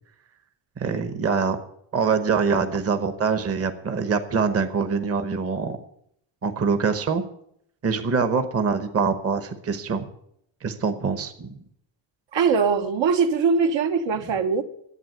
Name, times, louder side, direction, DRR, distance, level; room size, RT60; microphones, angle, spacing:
voice 1, 0.8-1.6 1.9-5.8 6.4-7.2 7.8-10.1 10.6-11.6, right 5 dB, 30° right, 8 dB, 1.0 m, -24 dB
voice 2, 12.3-14.6, right 5 dB, 65° right, 6 dB, 1.2 m, -21 dB
11.0 x 8.4 x 9.3 m, 0.72 s
cardioid pair, 155°, 49 cm